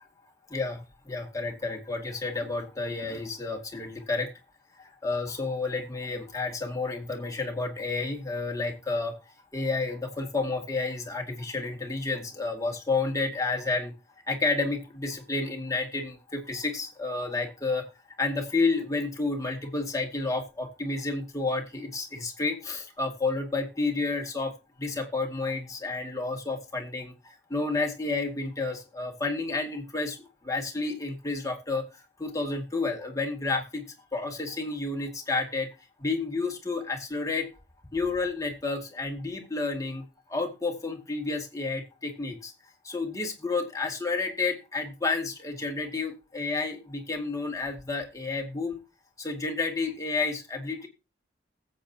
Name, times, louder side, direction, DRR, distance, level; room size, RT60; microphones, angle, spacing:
voice 1, 0.5-4.3 4.8-9.1 9.5-13.9 14.3-17.8 18.2-30.2 30.4-31.8 32.2-33.8 34.1-35.7 36.0-37.5 37.9-40.0 40.3-42.5 42.8-48.8 49.2-50.9, left 3 dB, 20° left, 1 dB, 2.2 m, -30 dB
20.0 x 8.0 x 2.9 m, 0.28 s
head